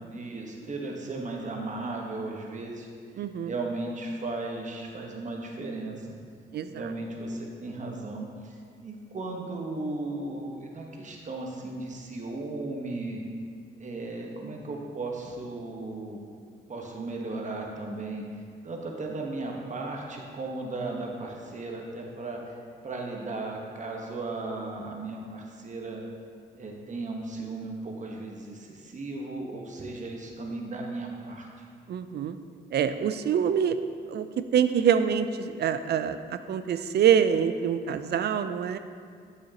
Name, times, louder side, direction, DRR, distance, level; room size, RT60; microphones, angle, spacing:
voice 1, 0.1-2.9 3.1-6.2 6.7-13.2 13.8-16.2 16.7-18.2 18.6-22.6 22.8-26.0 26.5-31.6, right 2 dB, 40° right, 0 dB, 1.1 m, -36 dB
voice 2, 3.2-3.5 6.5-6.7 31.9-32.4 32.7-33.8 34.1-34.3 34.5-38.8, right 8 dB, 60° right, 10 dB, 0.4 m, -25 dB
8.9 x 6.3 x 2.8 m, 2.1 s
cardioid pair, 65°, 19 cm